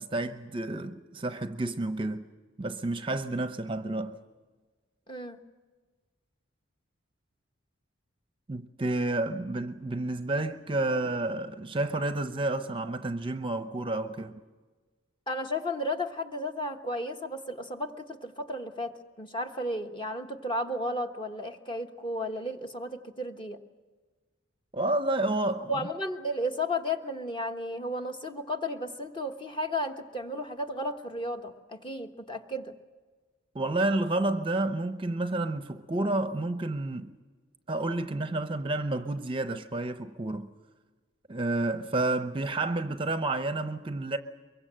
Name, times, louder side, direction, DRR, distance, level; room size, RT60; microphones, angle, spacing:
voice 1, 0.0-2.3 2.6-4.2 8.5-14.4 24.7-25.7 33.5-37.1 37.7-40.5 41.3-44.2, right 2 dB, 25° right, 0.7 m, -30 dB
voice 2, 5.1-5.4 15.3-23.6 25.7-32.7, left 1 dB, 25° left, 1.3 m, -33 dB
23.5 x 23.0 x 7.6 m
head